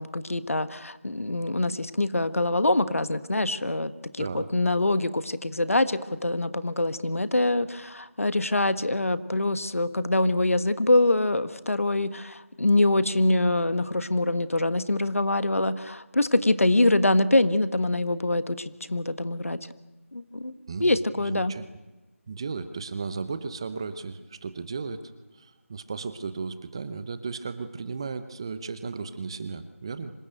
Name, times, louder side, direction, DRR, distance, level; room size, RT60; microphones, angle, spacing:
voice 1, 0.0-19.6 20.1-20.5 20.8-21.5, left 2 dB, 70° left, 13 dB, 1.5 m, -24 dB
voice 2, 20.7-21.7 22.3-30.1, right 4 dB, 20° right, 12 dB, 0.8 m, -35 dB
25.5 x 20.5 x 9.1 m, 1.1 s
figure-of-eight pair, 170°, 8 cm